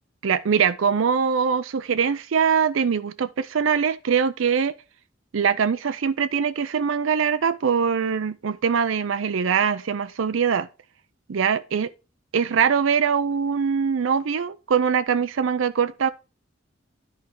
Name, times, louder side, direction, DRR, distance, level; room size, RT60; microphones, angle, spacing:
voice 1, 0.2-4.7 5.3-10.7 11.3-11.9 12.3-16.1, right 6 dB, 75° right, 0.5 m, -22 dB
10.5 x 4.5 x 4.5 m
head